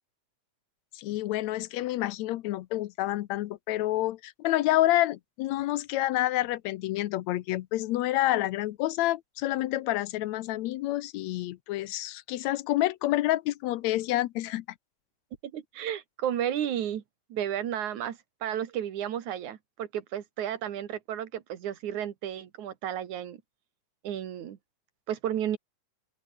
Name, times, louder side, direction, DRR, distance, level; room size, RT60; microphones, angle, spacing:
voice 1, 1.0-14.7, left 15 dB, 75° left, 1.9 m, -28 dB
voice 2, 15.4-17.0 17.3-23.4 24.0-24.6 25.1-25.6, right 10 dB, 75° right, 3.1 m, -33 dB
open air
omnidirectional pair, 3.5 m